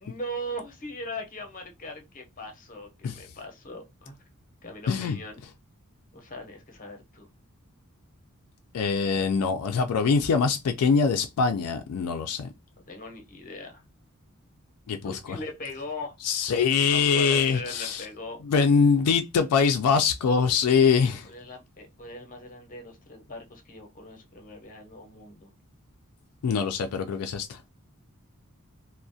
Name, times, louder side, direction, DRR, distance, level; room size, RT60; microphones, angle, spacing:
voice 1, 0.0-4.2 4.6-5.4 6.1-7.3 12.9-13.8 15.0-18.4 21.2-25.5, left 1 dB, 40° left, 0.7 m, -40 dB
voice 2, 4.9-5.2 8.7-12.5 14.9-15.1 16.2-18.0 18.5-21.3 26.4-27.6, left 5 dB, 85° left, 0.4 m, -23 dB
2.3 x 2.1 x 2.5 m
head